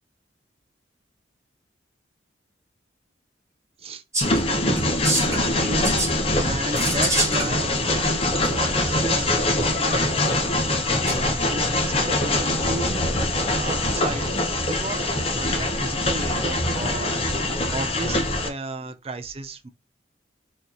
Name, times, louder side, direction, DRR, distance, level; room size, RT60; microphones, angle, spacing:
sound 1, 4.1-4.4 4.8-5.5 5.8-6.1 6.7-7.5 8.4-8.5 11.1-11.2, right 2 dB, 15° right, 1.5 m, -26 dB
Train, 4.2-18.5, left 1 dB, 30° left, 0.9 m, -23 dB
voice 1, 5.3-6.1 6.4-10.3 10.9-12.3 12.6-13.0 13.6-19.7, right 2 dB, 30° right, 0.6 m, -34 dB
4.3 x 3.1 x 4.0 m
head